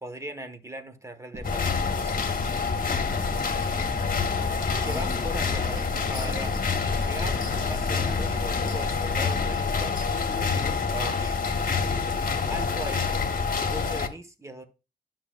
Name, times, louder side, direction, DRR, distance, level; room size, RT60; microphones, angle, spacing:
voice 1, 0.0-2.2 3.7-3.9 4.7-11.4 12.5-13.1 13.6-14.7, right 1 dB, 15° right, 1.3 m, -39 dB
sound 1, 1.3-9.1, equal, 40° right, 3.5 m, -40 dB
sound 2, 1.4-14.1, left 5 dB, 55° left, 1.2 m, -27 dB
12.5 x 5.9 x 2.4 m
wide cardioid pair, 90°, 17 cm